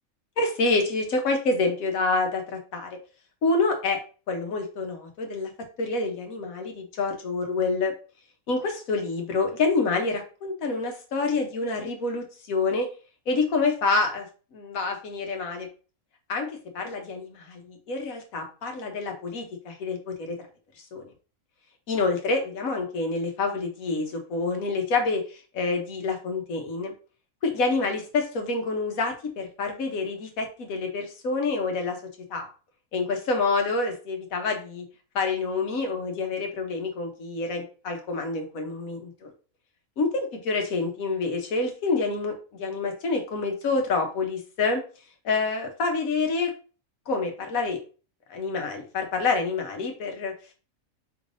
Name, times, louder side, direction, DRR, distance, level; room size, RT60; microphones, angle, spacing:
voice 1, 0.4-2.9 3.4-4.0 4.3-5.5 5.8-7.9 8.5-12.9 13.3-14.2 14.5-15.7 16.3-20.4 20.9-21.0 21.9-25.2 25.5-26.9 27.4-32.0 32.3-32.5 32.9-34.8 35.1-39.3 40.0-44.8 45.2-46.5 47.1-47.8 48.3-50.3, left 3 dB, 75° left, 4 dB, 1.4 m, -27 dB
5.6 x 3.2 x 2.6 m, 0.36 s
omnidirectional pair, 1.5 m